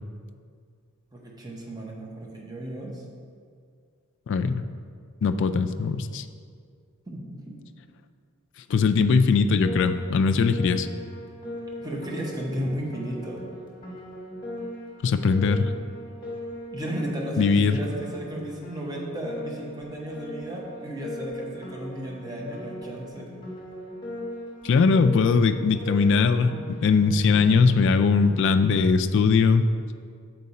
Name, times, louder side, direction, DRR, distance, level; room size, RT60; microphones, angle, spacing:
voice 1, 1.1-3.0 7.1-7.5 11.8-13.4 16.7-23.3, right 1 dB, 20° right, -2 dB, 0.9 m, -34 dB
voice 2, 4.3-4.6 5.2-6.2 8.7-10.9 15.0-15.7 17.4-17.8 24.6-29.7, left 5 dB, 55° left, 9 dB, 0.3 m, -20 dB
Piano, 9.6-28.8, left 1 dB, 20° left, 1.2 m, -39 dB
6.5 x 4.6 x 4.1 m, 2.1 s
head